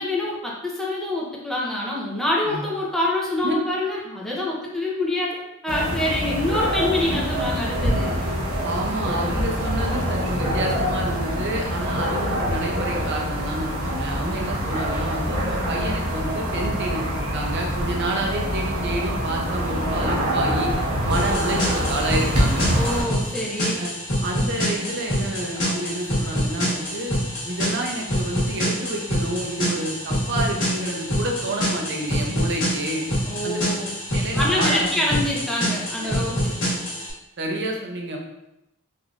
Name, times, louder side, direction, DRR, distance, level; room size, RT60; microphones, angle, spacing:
voice 1, 0.0-8.2 14.3-14.5 22.7-23.8 33.3-34.0 34.3-36.6, left 1 dB, ahead, -5 dB, 0.5 m, -26 dB
sound 1, 5.7-23.0, equal, 85° right, 0.8 m, -25 dB
voice 2, 8.6-20.7 21.0-22.7 23.8-23.9 24.2-27.1 27.5-33.0 33.4-33.6 34.1-35.1 36.0-36.2 37.4-38.2, right 1 dB, 55° right, 1 dB, 0.6 m, -29 dB
sound 2, 21.1-37.1, equal, 65° left, 1.1 m, -26 dB
3.3 x 2.5 x 2.3 m, 0.87 s
head